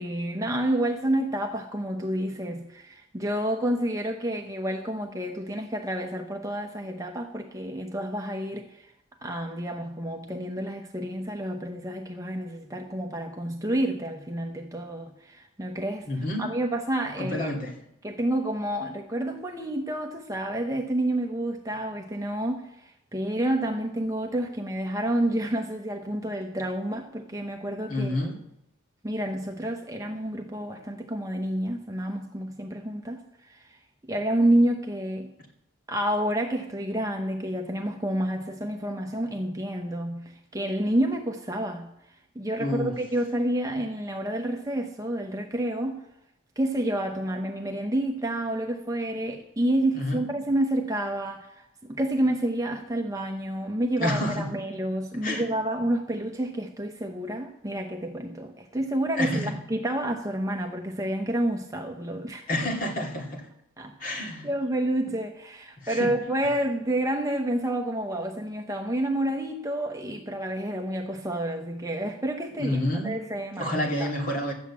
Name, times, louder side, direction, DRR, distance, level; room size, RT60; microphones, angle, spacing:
voice 1, 0.0-8.9 9.2-16.1 16.4-17.6 18.0-28.2 29.0-35.3 35.9-41.9 42.3-46.0 46.6-62.5 63.8-64.1 64.4-74.1, right 1 dB, 15° right, 3 dB, 0.9 m, -29 dB
voice 2, 16.1-16.4 17.2-17.7 27.9-28.4 42.6-42.9 49.9-50.2 54.0-54.4 55.2-55.4 59.1-59.5 62.5-63.4 64.0-64.5 65.8-66.1 72.6-73.2 73.6-74.5, left 1 dB, 40° left, 1 dB, 2.6 m, -28 dB
12.5 x 8.1 x 8.4 m, 0.80 s
head